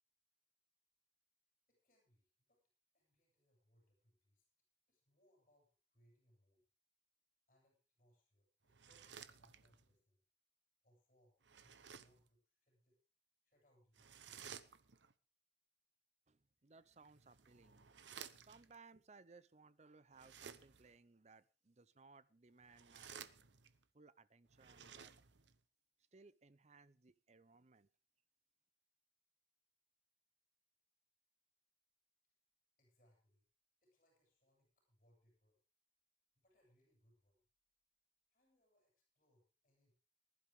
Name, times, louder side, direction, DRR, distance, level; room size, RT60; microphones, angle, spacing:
voice 1, 1.7-2.6 2.9-4.4 4.9-6.6 7.5-10.2 10.8-13.0 13.4-14.4 32.8-33.4 33.8-35.6 36.4-37.4 38.3-40.0, equal, 40° left, -2 dB, 7.3 m, -76 dB
sound 1, 8.7-9.9 11.4-12.3 13.9-15.1 16.9-18.8 20.1-21.0 22.6-23.8 24.5-25.6, right 7 dB, 85° right, 0.9 m, -56 dB
voice 2, 16.3-17.9 18.4-23.3 23.9-25.1 26.1-27.9, right 4 dB, 40° right, 16 dB, 0.7 m, -64 dB
20.5 x 11.5 x 3.6 m, 0.31 s
head